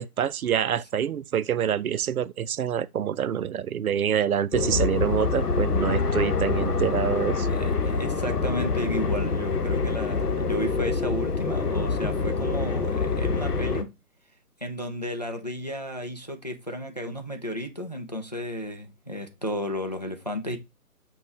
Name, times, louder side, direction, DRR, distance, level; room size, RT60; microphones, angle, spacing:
voice 1, 0.0-7.5, right 9 dB, 70° right, 0.5 m, -26 dB
sound 1, 4.5-13.8, left 4 dB, 85° left, 1.0 m, -26 dB
voice 2, 7.4-13.9 14.6-20.6, equal, 30° left, 0.4 m, -33 dB
6.0 x 2.3 x 3.7 m
figure-of-eight pair, 145°, 45 cm